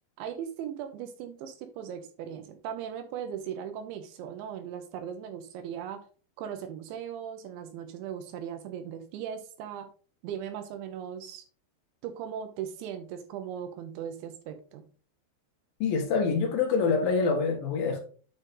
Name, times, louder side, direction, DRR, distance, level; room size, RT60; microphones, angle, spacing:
voice 1, 0.2-6.0 6.4-9.9 10.2-11.5 12.0-14.9, right 8 dB, 80° right, 3.0 m, -38 dB
voice 2, 15.8-18.0, left 5 dB, 60° left, 2.9 m, -26 dB
9.1 x 5.1 x 3.7 m
omnidirectional pair, 5.6 m